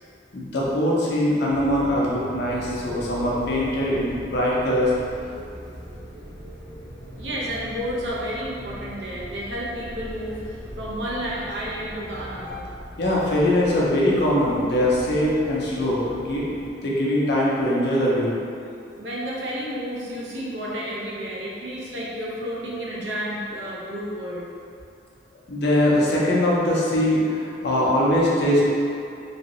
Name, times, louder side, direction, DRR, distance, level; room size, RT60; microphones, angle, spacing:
voice 1, 0.3-4.9 13.0-16.5 16.8-18.4 25.5-28.7, left 1 dB, 65° left, -5 dB, 0.7 m, -22 dB
sound 1, 1.5-16.7, equal, 30° left, 0.7 m, -40 dB
voice 2, 7.2-12.6 18.9-24.5, equal, 80° right, -5 dB, 0.7 m, -31 dB
3.1 x 2.7 x 3.0 m, 2.5 s
head